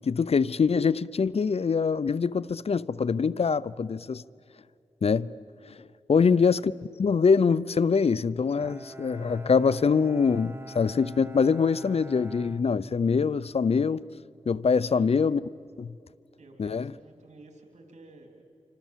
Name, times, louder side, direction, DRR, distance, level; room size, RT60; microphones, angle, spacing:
voice 1, 0.0-4.2 5.0-5.3 5.7-5.8 6.1-6.7 7.0-14.0 14.5-15.4 15.8-15.9 16.6-16.9, left 5 dB, 60° left, 0.5 m, -24 dB
voice 2, 6.1-6.5 14.8-15.1 16.4-18.4, right 2 dB, 80° right, 3.4 m, -52 dB
Bowed string instrument, 8.6-13.4, right 1 dB, 20° right, 0.9 m, -45 dB
27.0 x 25.5 x 7.4 m
cardioid pair, 50°, 12 cm